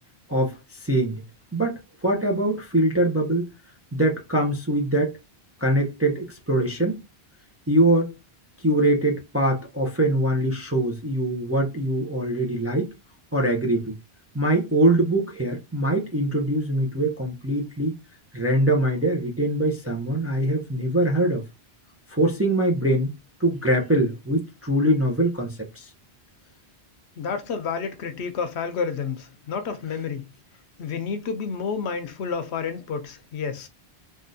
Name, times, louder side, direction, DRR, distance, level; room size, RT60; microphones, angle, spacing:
voice 1, 0.3-1.2 1.5-3.5 3.9-5.2 5.6-7.0 7.7-8.1 8.6-12.9 13.3-13.9 14.3-17.9 18.3-21.4 22.1-23.1 23.4-25.9, right 1 dB, 20° right, 0.4 m, -23 dB
voice 2, 27.2-30.3 30.8-33.7, left 6 dB, 90° left, 0.9 m, -30 dB
3.6 x 2.4 x 2.6 m
omnidirectional pair, 1.1 m